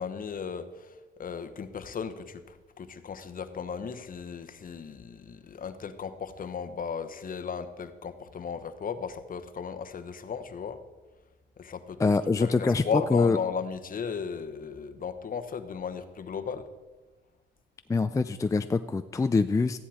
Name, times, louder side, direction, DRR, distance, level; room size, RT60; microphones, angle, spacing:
voice 1, 0.0-10.8 11.6-12.0 12.4-16.7, left 6 dB, 45° left, 10 dB, 1.0 m, -35 dB
voice 2, 12.0-12.8 13.1-13.4 17.9-19.8, left 4 dB, 15° left, 10 dB, 0.4 m, -24 dB
13.5 x 10.0 x 4.3 m, 1.2 s
cardioid pair, 90°, 20 cm